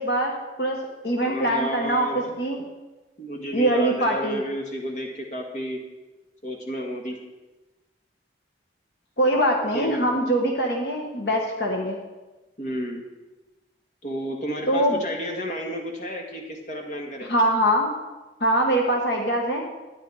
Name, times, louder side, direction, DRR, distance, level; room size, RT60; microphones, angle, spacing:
voice 1, 0.0-2.6 3.5-4.4 9.2-12.0 14.7-15.0 17.3-17.9 18.4-19.6, right 1 dB, 60° left, 1 dB, 1.4 m, -23 dB
voice 2, 1.2-2.2 3.2-5.8 6.4-7.2 9.7-10.1 12.6-13.0 14.0-17.3, equal, 40° left, 1 dB, 1.8 m, -32 dB
12.5 x 9.9 x 4.8 m, 1.1 s
head